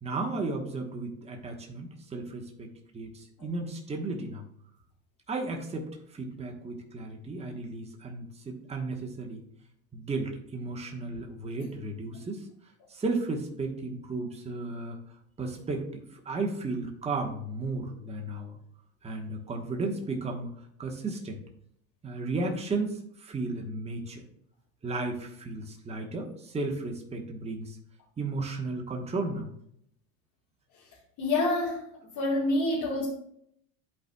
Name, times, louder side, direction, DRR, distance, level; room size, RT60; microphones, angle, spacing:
voice 1, 0.0-2.7 2.9-4.5 5.3-9.4 9.9-12.5 12.9-15.0 15.4-18.6 19.0-20.5 20.8-21.4 22.0-24.2 24.8-27.8 28.2-29.5, right 3 dB, 15° right, 1 dB, 1.1 m, -34 dB
voice 2, 31.2-31.8 32.2-33.1, left 2 dB, 45° left, -4 dB, 1.8 m, -26 dB
11.5 x 4.1 x 2.3 m, 0.71 s
supercardioid pair, 105°, 42 cm